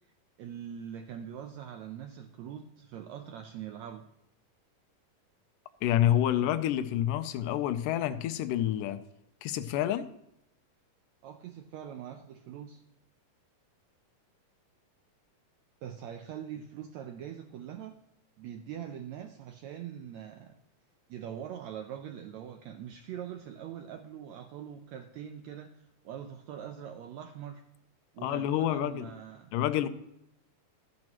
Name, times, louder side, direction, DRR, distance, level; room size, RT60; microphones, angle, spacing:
voice 1, 0.4-4.1 11.2-12.8 15.8-18.0 18.4-20.5 21.1-27.6 28.1-29.5, right 9 dB, 80° right, 6 dB, 1.6 m, -43 dB
voice 2, 5.8-9.0 9.4-10.1 28.2-29.1 29.5-29.9, left 12 dB, 85° left, 11 dB, 2.2 m, -28 dB
13.0 x 10.5 x 3.0 m, 0.81 s
omnidirectional pair, 3.9 m